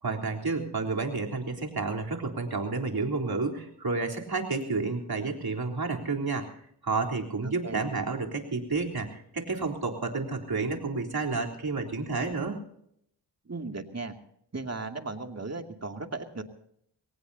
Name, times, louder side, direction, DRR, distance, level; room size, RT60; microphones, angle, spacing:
voice 1, 0.0-6.5 6.8-12.6, right 3 dB, 55° right, 1 dB, 3.7 m, -30 dB
voice 2, 7.4-7.9 13.4-14.1 14.5-16.4, right 3 dB, 35° right, 5 dB, 2.5 m, -36 dB
23.0 x 18.5 x 2.8 m, 0.70 s
cardioid pair, 45°, 44 cm